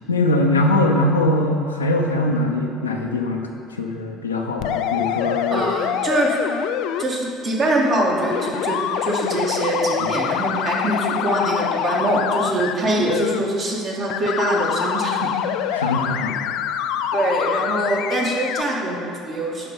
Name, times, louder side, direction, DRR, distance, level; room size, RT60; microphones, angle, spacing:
voice 1, 0.1-3.5 3.8-5.6 10.0-10.1 12.9-13.2 15.7-16.5, left 2 dB, 90° left, 2 dB, 0.7 m, -21 dB
sound 1, 4.6-7.0 8.3-12.7 13.1-13.4 14.1-18.6, left 10 dB, 65° left, 0.3 m, -25 dB
voice 2, 5.5-6.3 7.0-15.3 15.7-15.9 17.1-19.7, right 1 dB, 45° right, -3 dB, 1.9 m, -23 dB
11.0 x 3.9 x 5.3 m, 2.5 s
hypercardioid pair, 65°, 0 cm